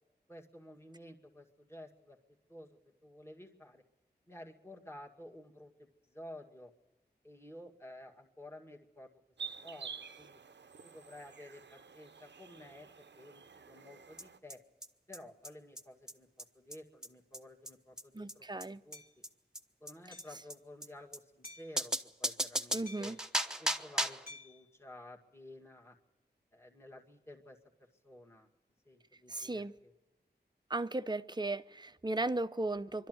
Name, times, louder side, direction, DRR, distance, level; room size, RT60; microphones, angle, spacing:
voice 1, 0.3-2.2 2.5-3.8 4.3-6.7 7.2-9.1 9.6-10.4 10.8-12.9 13.2-14.6 15.1-19.0 19.8-21.9 22.2-23.2 23.6-26.0 26.5-27.6 28.0-28.5 28.9-29.9, left 1 dB, 15° left, 2.1 m, -52 dB
sound 1, 9.4-14.4, right 5 dB, 85° right, 0.8 m, -49 dB
sound 2, 14.2-14.3 14.5-14.6 14.8-14.9 15.1-15.2 15.4-15.5 15.8-15.9 16.1-16.2 16.4-16.5 16.7-16.8 17.0-17.1 17.3-17.4 17.7-17.8 18.0-18.1 18.3-18.4 18.6-18.7 18.9-19.0 19.2-19.3 19.5-19.6 19.9-20.0 20.2-20.3 20.5-20.6 20.8-20.9 21.1-21.2 21.4-21.5 21.8-24.3, right 1 dB, 5° right, 1.1 m, -35 dB
voice 2, 18.1-18.8 22.7-23.2 29.3-29.7 30.7-33.1, right 2 dB, 25° right, 0.7 m, -36 dB
Hammer, 18.9-19.1 20.1-20.4 21.4-21.8 22.9-23.3 24.3-24.6, left 3 dB, 55° left, 2.8 m, -53 dB
24.5 x 12.5 x 9.4 m
wide cardioid pair, 75°, 18 cm